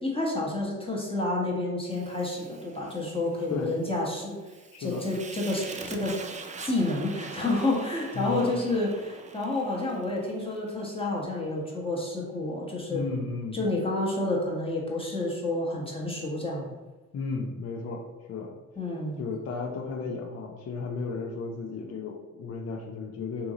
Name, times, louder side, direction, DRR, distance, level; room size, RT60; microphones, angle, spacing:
voice 1, 0.0-4.4 4.8-6.2 6.6-13.0 13.5-16.7 18.8-19.2, left 2 dB, 15° left, -4 dB, 1.1 m, -29 dB
Fire, 1.8-11.1, right 4 dB, 20° right, 0.4 m, -44 dB
voice 2, 4.7-5.0 8.1-8.6 12.9-13.6 17.1-18.5 19.2-23.5, left 4 dB, 40° left, 1 dB, 0.6 m, -34 dB
2.8 x 2.6 x 3.7 m, 1.2 s
supercardioid pair, 60°, 37 cm